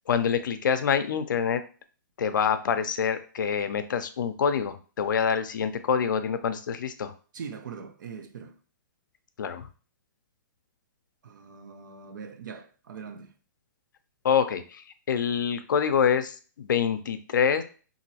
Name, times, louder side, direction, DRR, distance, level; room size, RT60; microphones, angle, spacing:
voice 1, 0.1-1.6 2.2-7.1 9.4-9.7 14.2-17.6, left 7 dB, 75° left, 0.5 m, -26 dB
voice 2, 7.3-8.6 11.2-13.3, right 6 dB, 70° right, 0.5 m, -41 dB
2.9 x 2.6 x 2.8 m
hypercardioid pair, 145°, 11 cm